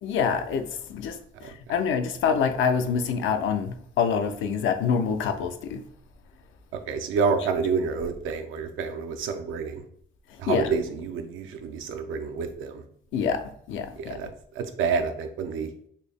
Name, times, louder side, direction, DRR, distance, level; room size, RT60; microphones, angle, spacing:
voice 1, 0.0-5.8 10.5-10.7 13.1-13.4 13.7-14.2, left 6 dB, 80° left, 8 dB, 0.5 m, -26 dB
voice 2, 6.7-9.8 10.4-12.8 14.0-14.3 14.6-15.7, right 5 dB, 85° right, 7 dB, 0.5 m, -28 dB
3.9 x 2.0 x 3.4 m, 0.63 s
cardioid pair, 90°, 20 cm